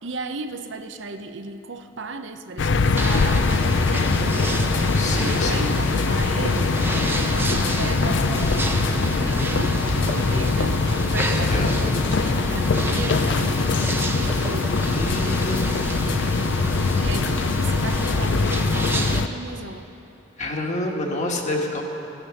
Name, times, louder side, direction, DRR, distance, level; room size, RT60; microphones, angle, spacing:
voice 1, 0.0-15.3 17.0-19.9, right 3 dB, 70° right, 8 dB, 0.8 m, -36 dB
sound 1, 2.6-19.3, left 4 dB, 65° left, 0.5 m, -22 dB
sound 2, 2.9-19.2, right 1 dB, 10° right, 0.7 m, -29 dB
voice 2, 4.9-5.7 11.3-11.9 14.8-15.6 20.4-21.8, left 1 dB, 40° left, 0 dB, 1.5 m, -28 dB
sound 3, 6.9-12.4, left 1 dB, 90° left, 1.2 m, -36 dB
16.0 x 9.9 x 7.1 m, 3.0 s
head